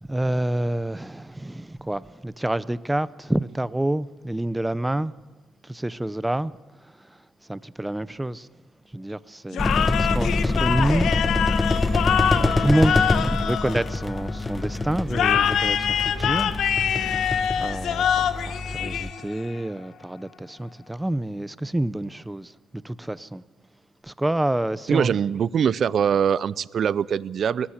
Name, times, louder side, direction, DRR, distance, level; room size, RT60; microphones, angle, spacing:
voice 1, 0.0-5.1 5.6-6.5 7.0-7.2 7.5-8.5 8.9-11.6 12.4-16.5 16.9-23.4 24.0-25.2, right 1 dB, 10° right, 0.7 m, -28 dB
sound 1, 9.5-14.4 15.1-19.5, left 8 dB, 70° left, 1.2 m, -25 dB
sound 2, 9.6-19.1, left 2 dB, 20° left, 1.0 m, -26 dB
voice 2, 24.9-27.7, right 8 dB, 55° right, 0.6 m, -23 dB
20.0 x 15.0 x 9.8 m
cardioid pair, 90°, 0 cm